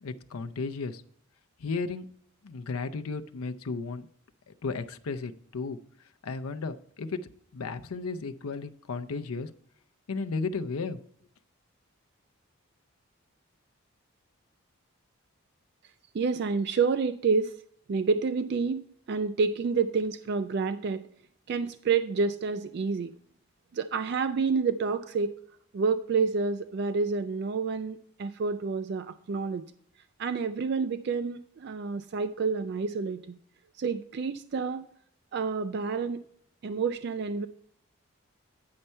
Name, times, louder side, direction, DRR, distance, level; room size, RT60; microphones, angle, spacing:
voice 1, 0.0-1.0 1.6-2.0 2.4-4.1 4.5-5.8 6.2-7.2 7.5-9.5 10.1-11.0, left 4 dB, 85° left, 9 dB, 0.5 m, -34 dB
voice 2, 16.1-17.5 17.9-21.0 21.5-23.1 23.7-25.3 25.7-29.7 30.2-33.4 33.8-34.9 35.3-36.2 36.6-37.5, right 5 dB, 50° right, 10 dB, 0.3 m, -29 dB
9.6 x 5.5 x 4.3 m, 0.62 s
head